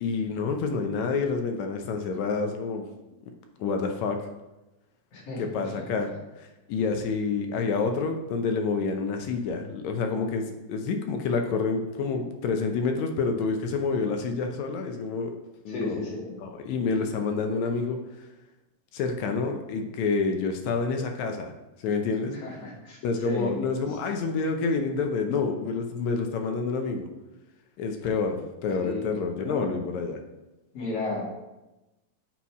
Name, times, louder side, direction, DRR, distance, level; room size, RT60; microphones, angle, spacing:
voice 1, 0.0-2.9 3.6-4.2 5.4-6.1 6.4-15.4 15.7-16.0 16.4-18.0 18.9-21.5 21.8-22.3 23.0-27.1 27.8-30.2, left 4 dB, 75° left, 5 dB, 2.0 m, -28 dB
voice 2, 5.1-5.8 15.7-16.3 22.2-23.5 28.8-29.0 29.4-29.8 30.7-31.2, left 2 dB, 55° left, -5 dB, 3.3 m, -34 dB
8.3 x 4.5 x 4.7 m, 1.0 s
omnidirectional pair, 3.4 m